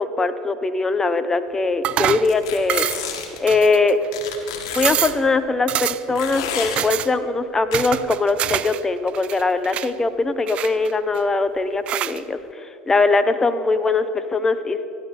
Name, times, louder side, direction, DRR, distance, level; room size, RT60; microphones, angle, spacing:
voice 1, 0.0-2.9 3.4-4.0 4.8-14.9, left 3 dB, 20° left, 11 dB, 0.9 m, -21 dB
sound 1, 1.8-2.3 2.7-3.1 3.5-4.1 4.4-4.5 4.7-5.2 5.7-6.2 6.8-7.1 7.7-8.8 9.1-9.9 10.5-11.2 11.9-12.2, right 12 dB, 50° right, 0.4 m, -25 dB
sound 2, 2.2-3.4 4.1-5.1 6.2-6.8 7.7-7.8, left 7 dB, 70° left, 1.9 m, -30 dB
26.0 x 11.0 x 4.3 m, 2.7 s
hypercardioid pair, 75°, 3 cm